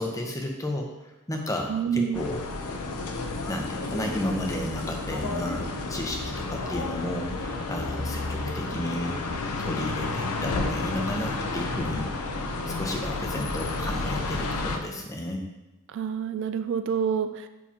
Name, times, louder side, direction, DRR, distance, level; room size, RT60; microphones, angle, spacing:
voice 1, 0.0-2.4 3.5-12.1 12.7-15.4, left 1 dB, 15° left, 1 dB, 0.8 m, -32 dB
voice 2, 1.7-2.2 15.9-17.5, right 7 dB, 55° right, 9 dB, 0.3 m, -27 dB
sound 1, 2.1-14.8, left 3 dB, 85° left, 0.7 m, -31 dB
7.3 x 5.8 x 2.8 m, 1.0 s
head